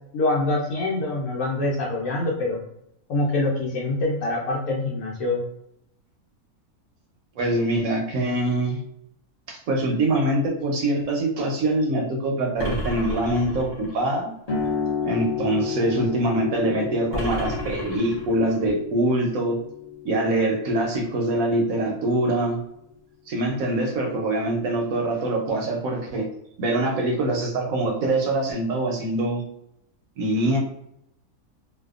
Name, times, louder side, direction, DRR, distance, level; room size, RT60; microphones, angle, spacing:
voice 1, 0.1-2.6 3.1-5.4, left 2 dB, 75° left, -3 dB, 1.0 m, -25 dB
voice 2, 7.4-8.8 9.5-14.3 15.0-19.6 20.0-22.6 23.3-26.3 26.6-29.4 30.2-30.6, right 1 dB, 70° right, 0 dB, 0.9 m, -24 dB
sound 1, 12.6-14.0 17.1-18.6, equal, 20° right, 0.7 m, -32 dB
sound 2, 14.5-21.6, left 7 dB, 35° left, 0.6 m, -32 dB
2.6 x 2.2 x 2.3 m, 0.77 s
omnidirectional pair, 1.6 m